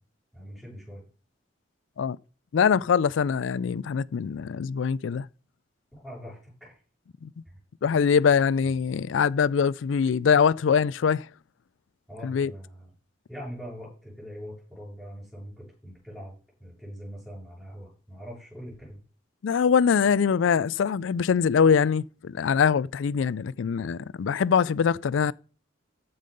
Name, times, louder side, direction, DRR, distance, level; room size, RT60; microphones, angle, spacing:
voice 1, 0.3-1.0 5.9-6.8 7.5-7.6 8.6-8.7 12.1-12.9 13.3-19.0, equal, ahead, 7.3 m, -42 dB
voice 2, 2.5-5.3 7.2-7.3 7.8-11.3 12.2-12.5 19.4-25.3, left 6 dB, 85° left, 0.4 m, -23 dB
14.0 x 5.5 x 5.3 m
head